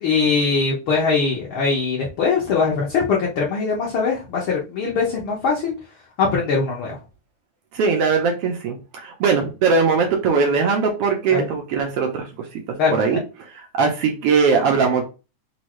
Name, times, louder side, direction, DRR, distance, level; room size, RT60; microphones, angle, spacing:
voice 1, 0.0-5.7 6.2-7.0 11.3-11.5 12.8-13.2, left 4 dB, 60° left, -4 dB, 1.5 m, -21 dB
voice 2, 7.7-12.6 12.9-13.2 13.5-15.0, right 5 dB, 70° right, 2 dB, 1.5 m, -20 dB
6.1 x 2.7 x 3.1 m, 0.30 s
omnidirectional pair, 3.4 m